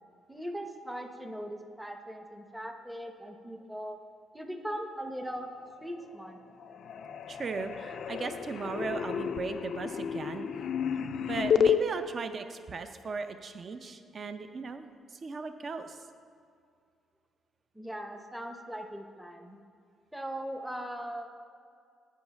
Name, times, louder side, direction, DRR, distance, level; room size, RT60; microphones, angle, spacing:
voice 1, 0.3-4.0 4.3-5.5 5.8-6.4 17.7-19.6 20.1-21.3, equal, 5° right, 4 dB, 0.7 m, -39 dB
sound 1, 5.8-6.3 6.6-11.8, left 8 dB, 65° left, 0.3 m, -31 dB
voice 2, 7.3-10.5 11.2-16.0, right 4 dB, 45° right, 8 dB, 0.5 m, -37 dB
8.5 x 5.0 x 5.2 m, 2.4 s
cardioid pair, 90°, 0 cm